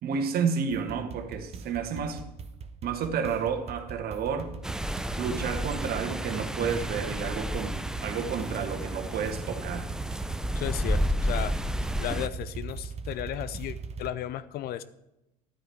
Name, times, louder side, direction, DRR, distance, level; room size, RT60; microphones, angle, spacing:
voice 1, 0.0-2.2 2.8-4.5 5.2-9.9, right 6 dB, 50° right, 1.5 m, -31 dB
sound 1, 0.7-14.1, right 5 dB, 30° right, 1.0 m, -40 dB
sound 2, 4.6-12.3, equal, 5° right, 0.5 m, -31 dB
voice 2, 10.6-11.6 12.0-14.8, left 12 dB, 50° left, 0.6 m, -34 dB
12.5 x 9.1 x 4.6 m
hypercardioid pair, 70°, 20 cm